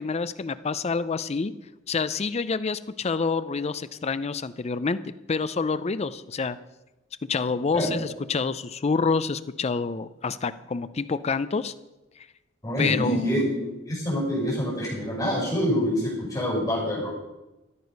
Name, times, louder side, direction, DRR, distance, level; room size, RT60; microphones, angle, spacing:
voice 1, 0.0-1.5 1.9-5.0 5.3-6.6 7.3-11.7 12.8-13.3, left 4 dB, 35° left, 14 dB, 0.5 m, -27 dB
voice 2, 12.6-17.1, equal, 20° left, -5 dB, 5.7 m, -26 dB
14.0 x 9.8 x 5.3 m, 1.0 s
head